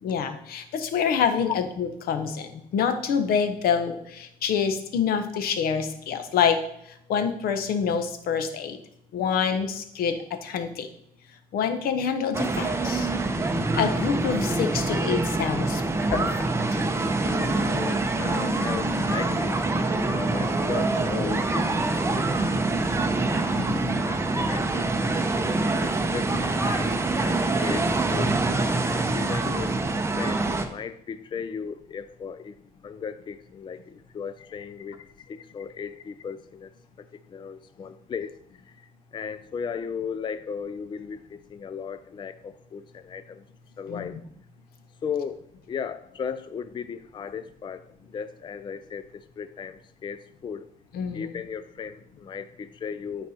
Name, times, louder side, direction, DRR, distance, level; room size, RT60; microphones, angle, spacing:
voice 1, 0.0-6.6 7.1-8.8 9.1-10.9 11.5-13.1 13.5-16.3 16.7-16.8 23.6-24.0 43.9-44.2 50.9-51.4, left 7 dB, 85° left, 9 dB, 1.1 m, -27 dB
sound 1, 12.3-30.7, right 2 dB, 15° right, 0.8 m, -25 dB
voice 2, 17.2-19.6 20.1-22.6 23.3-23.4 24.0-24.9 25.6-28.4 28.9-29.8 30.2-32.5 32.8-36.7 37.0-38.4 38.7-43.4 43.8-44.2 45.0-47.9 48.1-50.7 51.1-53.3, left 6 dB, 30° left, 12 dB, 0.4 m, -36 dB
13.0 x 4.7 x 4.3 m, 0.72 s
cardioid pair, 135°, 15 cm